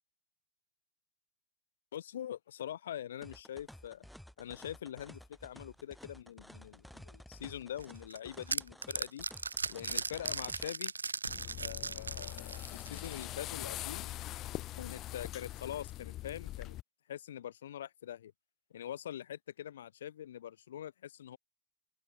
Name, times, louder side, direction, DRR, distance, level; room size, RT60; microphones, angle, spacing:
voice 1, 1.9-4.1 4.4-9.3 9.7-10.9 11.6-14.1 14.8-16.8 17.1-18.3 18.7-21.4, left 10 dB, 60° left, 0.6 m, -44 dB
sound 1, 3.2-10.7, equal, ahead, 5.5 m, -53 dB
sound 2, 7.8-13.3, right 4 dB, 75° right, 1.0 m, -38 dB
sound 3, 11.3-16.8, left 15 dB, 35° left, 1.0 m, -42 dB
open air
figure-of-eight pair, 90°, 0 cm